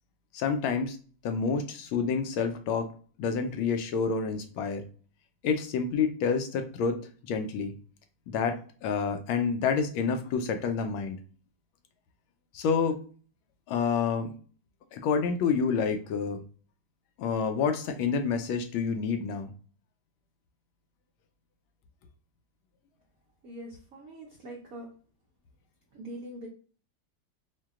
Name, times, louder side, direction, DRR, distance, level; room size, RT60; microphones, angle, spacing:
voice 1, 0.3-1.0 1.2-2.9 3.2-4.8 5.4-7.0 7.2-7.7 8.3-11.2 12.5-13.0 13.7-14.3 14.9-16.4 17.2-19.5, left 5 dB, 75° left, 6 dB, 1.3 m, -28 dB
voice 2, 23.4-24.9 25.9-26.5, right 1 dB, 70° right, -1 dB, 0.8 m, -43 dB
4.6 x 2.2 x 3.5 m, 0.41 s
omnidirectional pair, 2.4 m